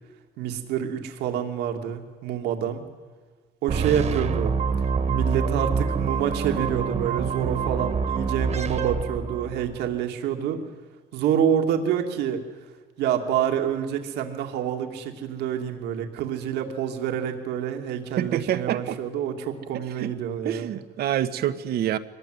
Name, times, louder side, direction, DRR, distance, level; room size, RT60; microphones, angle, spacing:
voice 1, 0.4-2.8 3.6-4.5 5.1-10.6 11.1-12.4 13.0-20.7, right 9 dB, 85° right, 5 dB, 2.5 m, -27 dB
sound 1, 3.7-9.8, right 5 dB, 40° right, 1.7 m, -26 dB
voice 2, 18.2-19.0 19.7-20.1 20.4-22.0, right 11 dB, 70° right, 10 dB, 1.4 m, -27 dB
23.0 x 19.5 x 9.6 m, 1.4 s
cardioid pair, 110°, 17 cm